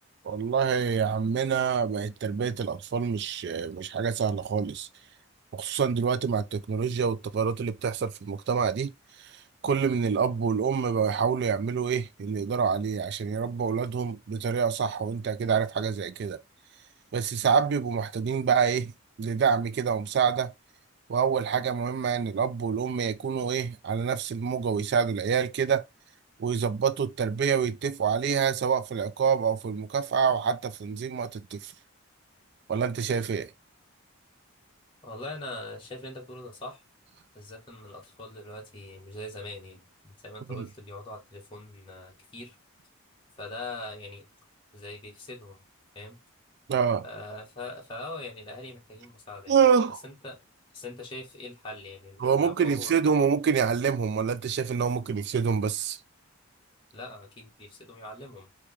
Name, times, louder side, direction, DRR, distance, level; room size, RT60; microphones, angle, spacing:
voice 1, 0.2-4.9 5.5-8.9 9.6-16.4 17.1-18.9 19.2-20.5 21.1-25.9 26.4-31.7 32.7-33.5 40.5-40.7 46.7-47.0 49.5-50.0 52.2-56.0, right 6 dB, 50° right, 0.3 m, -26 dB
voice 2, 35.0-36.8 37.3-42.6 43.4-44.3 44.7-45.6 45.9-46.2 47.0-49.6 50.0-50.4 50.7-53.2 56.9-58.5, left 2 dB, 25° left, 1.4 m, -42 dB
4.7 x 2.9 x 3.4 m
head